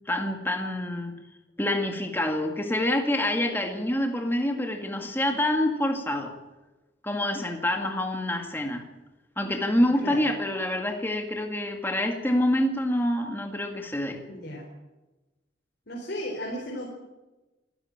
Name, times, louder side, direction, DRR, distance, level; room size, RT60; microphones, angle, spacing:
voice 1, 0.1-1.2 1.6-6.3 7.0-8.8 9.4-14.2, left 1 dB, 10° left, 3 dB, 2.0 m, -26 dB
voice 2, 9.8-10.3 14.3-14.7 15.9-16.9, equal, 60° left, -1 dB, 4.5 m, -35 dB
26.5 x 13.0 x 8.9 m, 1.1 s
head